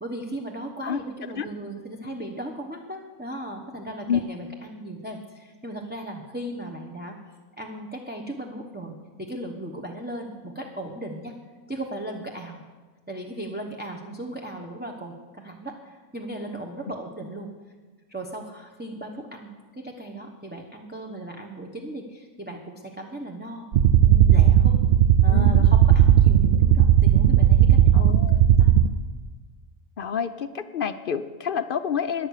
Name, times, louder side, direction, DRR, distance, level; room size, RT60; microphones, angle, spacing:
voice 1, 0.0-7.2 7.6-11.4 11.7-12.6 13.1-17.5 18.1-23.7 24.0-24.8 25.2-28.7, right 1 dB, 10° right, 0 dB, 1.0 m, -37 dB
sound 1, 23.7-28.9, right 10 dB, 60° right, 0.7 m, -16 dB
voice 2, 25.3-25.7 27.9-28.5 30.0-32.3, left 7 dB, 55° left, 11 dB, 0.6 m, -28 dB
15.0 x 10.5 x 6.5 m, 1.4 s
omnidirectional pair, 1.3 m